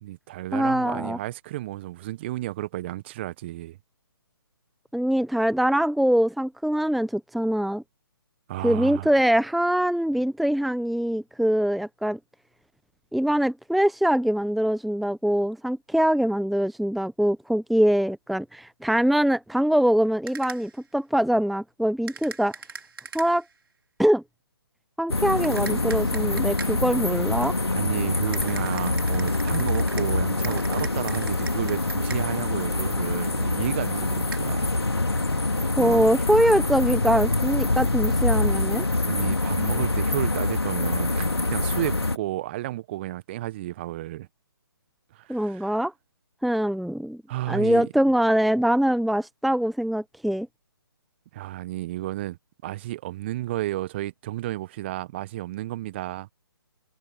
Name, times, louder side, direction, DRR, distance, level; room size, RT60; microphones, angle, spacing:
voice 1, 0.0-3.8 8.5-9.1 27.7-34.8 35.8-36.0 39.1-44.3 45.1-45.7 47.3-47.9 51.3-52.4 52.6-56.3, right 15 dB, 25° right, 1.3 m, -32 dB
voice 2, 0.5-1.2 4.9-7.8 8.6-12.2 13.1-22.5 23.1-23.4 24.0-24.2 25.0-27.5 35.8-38.9 45.3-45.9 46.4-47.2 47.5-50.5, equal, ahead, 0.9 m, -23 dB
sound 1, 20.3-20.8 22.1-23.5 25.4-27.0 28.3-32.5 34.3-34.4, right 4 dB, 60° right, 3.5 m, -41 dB
sound 2, 25.1-42.2, left 2 dB, 80° left, 2.5 m, -25 dB
figure-of-eight pair, 140°, 13 cm